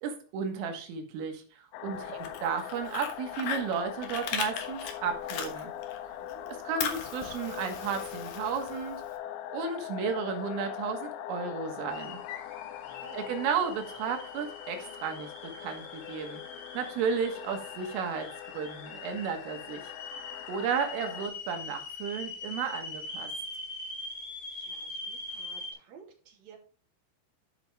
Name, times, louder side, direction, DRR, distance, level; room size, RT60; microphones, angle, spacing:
voice 1, 0.0-5.7 6.7-9.0 9.5-12.2 13.1-16.4 16.8-18.3 18.5-19.9 20.5-23.3, right 6 dB, 80° right, 5 dB, 4.0 m, -33 dB
sound 1, 1.7-21.3, left 11 dB, 80° left, 2.7 m, -42 dB
voice 2, 1.9-2.4 6.2-6.6 12.8-13.3 24.5-26.6, right 7 dB, 40° right, -1 dB, 3.3 m, -55 dB
Fire, 2.1-6.0 6.3-9.1, left 7 dB, 65° left, 2.5 m, -37 dB
sound 2, 11.9-25.7, left 3 dB, 45° left, 3.5 m, -43 dB
12.5 x 6.3 x 3.4 m, 0.39 s
omnidirectional pair, 5.8 m